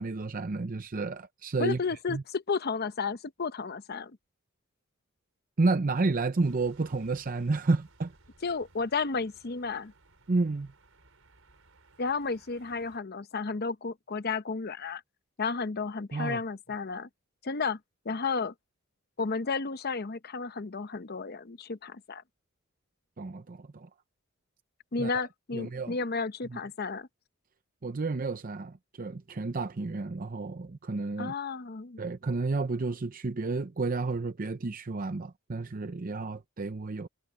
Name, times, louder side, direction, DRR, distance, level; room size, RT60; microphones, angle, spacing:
voice 1, 0.0-1.8 2.1-2.2 5.6-8.1 10.3-10.7 16.1-16.4 23.2-23.9 25.0-25.3 25.5-26.0 26.5-26.6 27.8-31.3 32.0-37.1, right 3 dB, 40° right, 0.6 m, -31 dB
voice 2, 1.6-4.2 8.4-9.9 12.0-15.0 15.4-17.1 17.4-17.8 18.0-18.5 19.2-22.2 24.9-27.1 31.2-32.0, left 4 dB, 50° left, 0.8 m, -32 dB
sound 1, 6.4-13.0, right 2 dB, 80° right, 5.1 m, -60 dB
head